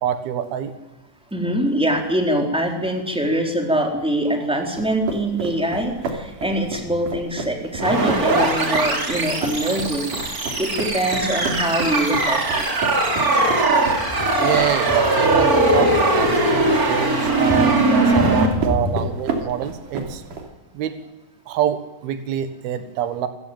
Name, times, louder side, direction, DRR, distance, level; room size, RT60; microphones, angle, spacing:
voice 1, 0.0-0.8 14.4-20.2 20.7-21.0 21.5-23.3, right 10 dB, 80° right, 10 dB, 3.4 m, -26 dB
voice 2, 1.3-12.7 17.5-17.6 18.1-18.3, right 1 dB, ahead, 2 dB, 3.4 m, -23 dB
sound 1, 4.8-20.4, right 4 dB, 60° right, 4.4 m, -31 dB
sound 2, 7.8-18.5, right 2 dB, 25° right, 3.3 m, -20 dB
27.5 x 15.5 x 9.2 m, 1.0 s
omnidirectional pair, 4.3 m